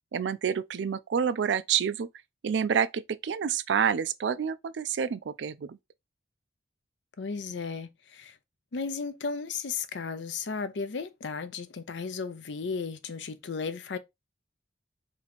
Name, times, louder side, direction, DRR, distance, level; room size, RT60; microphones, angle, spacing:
voice 1, 0.1-2.1 2.4-5.8, right 7 dB, 75° right, 0.4 m, -28 dB
voice 2, 7.2-8.3 8.7-14.0, left 5 dB, 75° left, 0.6 m, -35 dB
3.0 x 2.7 x 4.1 m
head